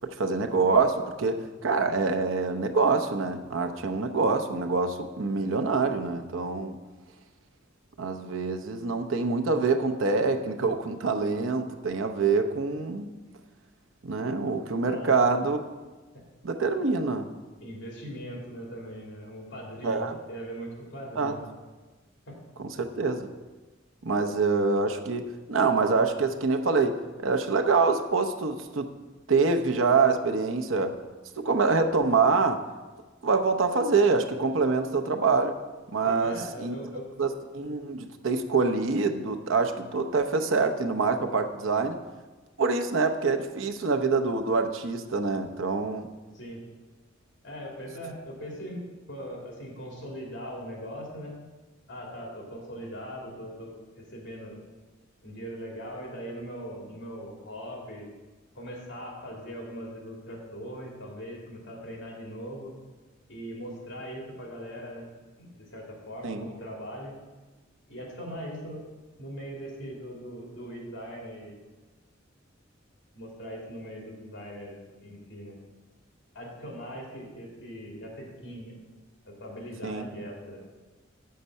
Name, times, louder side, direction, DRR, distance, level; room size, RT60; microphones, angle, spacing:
voice 1, 0.0-6.8 8.0-13.1 14.0-15.6 16.4-17.3 19.8-20.2 21.2-21.3 22.6-22.7 23.0-23.3 24.0-28.9 29.3-31.0 31.4-32.6 33.2-35.6 35.9-36.7 37.2-42.0 42.6-46.1 66.2-66.5 79.8-80.1, right 4 dB, 80° right, 5 dB, 0.8 m, -25 dB
voice 2, 14.9-15.3 17.6-21.4 22.3-22.4 36.0-37.0 46.3-46.6 47.4-48.8 49.1-51.3 51.9-54.6 55.2-58.1 58.6-62.7 63.3-65.1 65.4-67.1 67.9-68.8 69.2-71.6 73.1-75.6 76.3-78.7 79.2-80.6, equal, 65° left, -2 dB, 2.8 m, -40 dB
8.2 x 6.6 x 5.5 m, 1.2 s
head